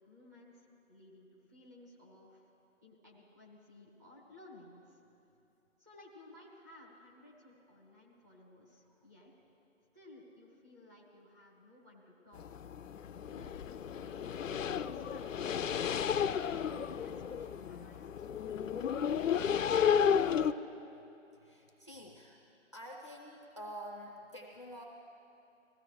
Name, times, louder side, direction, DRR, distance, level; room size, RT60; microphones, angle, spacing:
voice 1, 0.0-2.5 2.8-5.0 5.8-9.3 9.9-12.6 13.3-15.9 16.5-18.5, left 2 dB, 15° right, -5 dB, 0.9 m, -57 dB
sound 1, 12.4-20.5, left 8 dB, 80° left, 0.6 m, -32 dB
voice 2, 16.5-16.9 21.3-22.4 22.7-24.8, equal, 25° left, -1 dB, 0.6 m, -48 dB
20.5 x 15.0 x 3.2 m, 2.9 s
hypercardioid pair, 170°, 39 cm